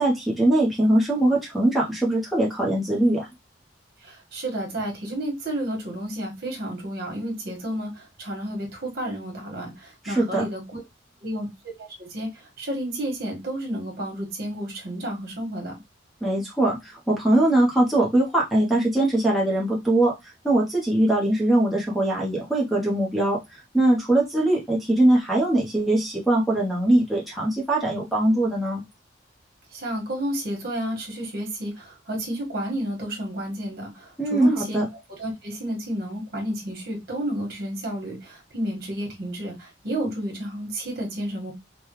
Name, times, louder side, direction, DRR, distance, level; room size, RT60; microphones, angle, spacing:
voice 1, 0.0-3.3 10.0-10.4 16.2-20.1 20.4-28.8 34.2-34.8, right 1 dB, ahead, 0.9 m, -21 dB
voice 2, 4.0-10.8 11.2-11.5 11.8-15.8 29.7-34.8 35.2-41.5, right 1 dB, 55° right, 1.6 m, -31 dB
5.3 x 2.3 x 3.1 m
head